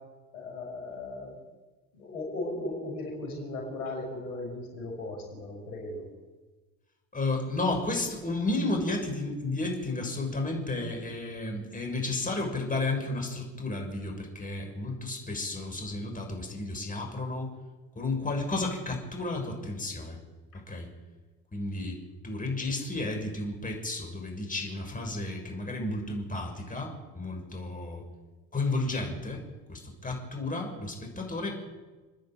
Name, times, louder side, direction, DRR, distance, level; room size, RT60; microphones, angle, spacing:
voice 1, 0.3-1.3 1.9-6.1, left 2 dB, 80° left, 1 dB, 6.1 m, -37 dB
voice 2, 7.1-17.5 17.9-20.2 20.5-20.9 21.5-28.0 28.5-29.4 29.7-31.6, left 2 dB, 20° left, 2 dB, 6.8 m, -32 dB
29.0 x 10.5 x 9.3 m, 1.2 s
hypercardioid pair, 70°, 44 cm